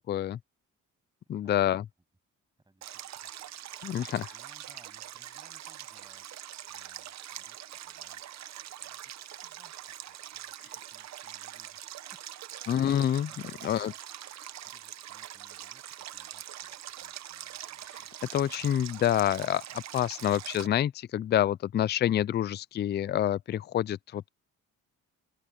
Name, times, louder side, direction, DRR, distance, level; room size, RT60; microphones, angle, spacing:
voice 1, 0.1-0.4 1.3-1.8 3.8-4.3 12.7-13.3 13.6-13.9 18.3-24.3, left 11 dB, 35° left, 0.4 m, -27 dB
voice 2, 2.6-3.3 4.3-6.4 6.7-7.6 7.8-8.4 8.8-9.1 9.4-12.8 13.3-14.0 14.6-18.1, right 2 dB, 15° right, 7.8 m, -64 dB
Stream, 2.8-20.7, right 12 dB, 60° right, 0.9 m, -43 dB
open air
cardioid pair, 90°, 30 cm